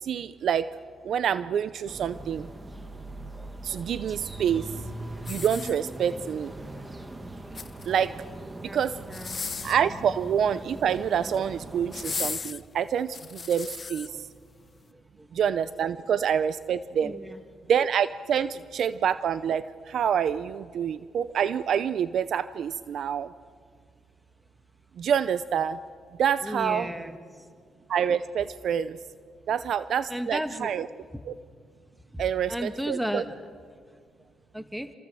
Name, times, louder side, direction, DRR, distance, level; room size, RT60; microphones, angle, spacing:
voice 1, 0.0-0.7 1.0-2.5 3.6-4.7 5.3-6.5 7.9-8.2 8.6-9.0 9.6-14.3 15.3-17.1 17.7-23.3 25.0-25.8 26.2-26.9 27.9-29.0 29.5-30.9 31.3-31.4 32.2-33.2, right 8 dB, 65° right, 14 dB, 0.7 m, -27 dB
sound 1, 1.9-12.3, right 1 dB, 20° right, 1.9 m, -41 dB
sound 2, 5.2-6.2 7.3-8.1 9.0-9.9 11.0-11.4 11.9-14.1 14.7-14.8, left 5 dB, 35° left, 0.9 m, -36 dB
voice 2, 9.1-9.5 14.1-14.2 15.2-15.3 17.0-17.4 26.4-27.4 30.1-30.7 31.1-31.2 32.1-33.4 34.5-34.9, equal, 5° right, 8 dB, 1.6 m, -34 dB
28.0 x 26.0 x 7.7 m, 2.1 s
cardioid pair, 90°, 0 cm